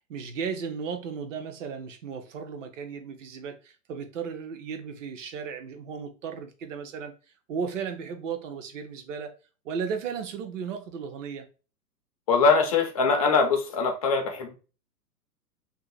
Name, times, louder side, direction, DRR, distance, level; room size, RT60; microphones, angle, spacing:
voice 1, 0.1-7.1 7.5-9.3 9.6-11.5, right 6 dB, 50° right, 0.8 m, -35 dB
voice 2, 12.3-14.5, left 4 dB, 25° left, 0.4 m, -22 dB
2.7 x 2.6 x 3.8 m
hypercardioid pair, 125°, 49 cm